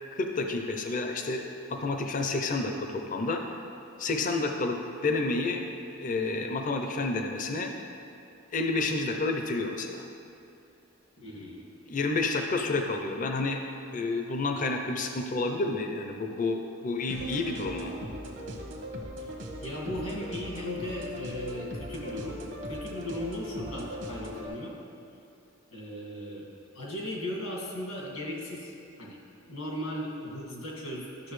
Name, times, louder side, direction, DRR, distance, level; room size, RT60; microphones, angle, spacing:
voice 1, 0.1-1.4 1.7-3.4 4.0-5.6 5.9-7.7 8.5-10.0 11.9-13.6 13.9-17.9, left 3 dB, 40° left, 4 dB, 0.5 m, -30 dB
voice 2, 11.2-11.7 19.2-19.3 19.6-22.4 22.7-24.8 25.7-26.5 26.7-28.7 29.0-29.2 29.5-31.3, left 1 dB, 85° left, -3 dB, 1.9 m, -37 dB
sound 1, 17.1-24.5, equal, 60° right, 1.0 m, -39 dB
12.0 x 6.4 x 3.2 m, 2.7 s
head